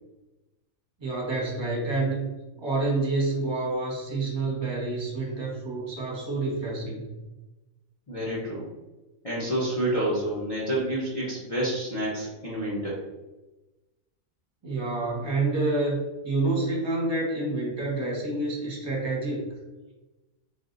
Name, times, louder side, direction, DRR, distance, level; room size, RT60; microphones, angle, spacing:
voice 1, 1.0-2.3 2.6-7.1 14.6-19.5, right 2 dB, 20° right, -3 dB, 1.1 m, -28 dB
voice 2, 8.1-8.7 9.2-13.0, right 1 dB, 30° left, -6 dB, 0.9 m, -28 dB
3.8 x 2.7 x 3.8 m, 1.1 s
omnidirectional pair, 1.4 m